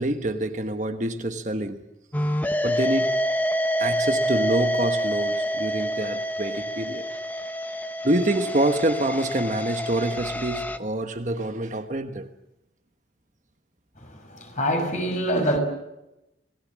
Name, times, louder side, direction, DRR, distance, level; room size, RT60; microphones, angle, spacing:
voice 1, 0.0-1.8 2.6-3.2 3.8-7.1 8.0-12.3, right 1 dB, 45° right, 1.3 m, -26 dB
sound 1, 2.1-10.8, equal, 10° left, 0.9 m, -27 dB
voice 2, 14.0-15.6, equal, 40° left, 6.1 m, -25 dB
27.0 x 19.0 x 7.6 m
head